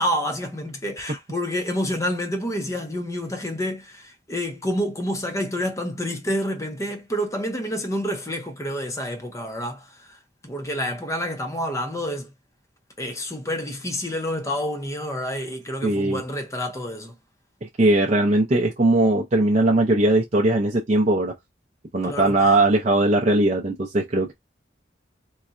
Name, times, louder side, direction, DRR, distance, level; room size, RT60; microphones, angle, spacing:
voice 1, 0.0-9.9 10.4-12.3 13.0-17.1 22.0-22.3, equal, 15° left, 0.6 m, -28 dB
voice 2, 15.8-16.2 17.6-21.3 21.9-24.3, right 2 dB, 35° right, 0.5 m, -20 dB
3.9 x 2.1 x 2.4 m
head